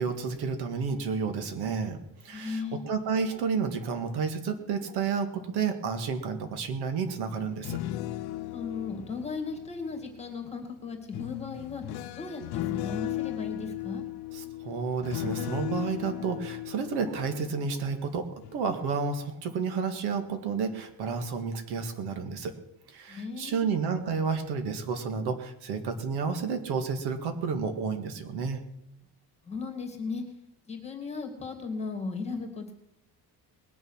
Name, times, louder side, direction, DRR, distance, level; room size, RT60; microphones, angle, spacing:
voice 1, 0.0-2.0 2.2-7.8 14.3-22.6 22.9-28.6, right 5 dB, 80° right, 7 dB, 2.0 m, -31 dB
voice 2, 2.3-2.8 8.5-11.8 12.2-14.0 23.1-23.7 29.4-30.2 30.7-32.7, left 4 dB, 15° left, 4 dB, 2.4 m, -36 dB
sound 1, 7.5-10.3 11.1-18.1 18.4-18.7, left 14 dB, 70° left, 0.8 m, -36 dB
20.5 x 7.1 x 6.4 m, 0.80 s
cardioid pair, 150°, 39 cm